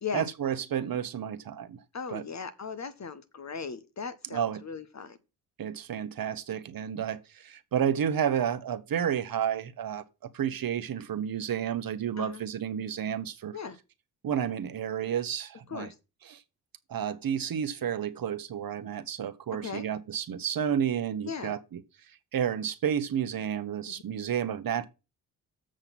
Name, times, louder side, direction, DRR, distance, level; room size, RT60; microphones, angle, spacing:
voice 1, 0.1-1.8 2.1-2.2 4.3-4.6 5.6-10.0 10.3-13.6 14.2-15.9 16.2-16.4 16.9-21.8 22.3-24.8, right 9 dB, 55° right, 1.2 m, -31 dB
voice 2, 1.9-5.2 12.2-12.4 13.5-13.8 15.7-15.9 19.6-19.9 21.3-21.5 23.9-24.0, left 6 dB, 40° left, 1.3 m, -38 dB
7.5 x 6.4 x 6.0 m
hypercardioid pair, 45°, 41 cm